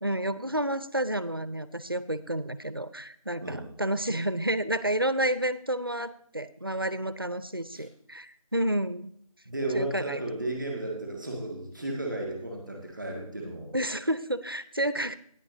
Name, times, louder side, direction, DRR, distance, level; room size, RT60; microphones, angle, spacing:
voice 1, 0.0-9.1 9.7-10.2 13.7-15.2, right 1 dB, 40° right, 14 dB, 0.4 m, -30 dB
voice 2, 3.4-3.7 7.7-7.9 9.4-13.7, right 2 dB, ahead, 0 dB, 1.3 m, -34 dB
14.5 x 9.5 x 2.6 m, 0.67 s
figure-of-eight pair, 175°, 18 cm